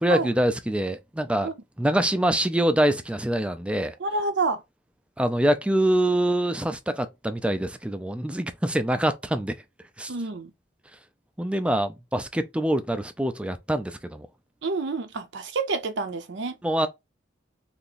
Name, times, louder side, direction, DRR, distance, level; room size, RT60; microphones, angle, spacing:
voice 1, 0.0-1.5 1.8-3.9 5.2-9.6 10.0-10.1 11.4-14.3 16.6-16.9, right 1 dB, 5° right, 0.4 m, -25 dB
voice 2, 4.0-4.6 10.1-10.5 14.6-16.6, right 3 dB, 65° right, 0.6 m, -28 dB
2.9 x 2.6 x 3.8 m
head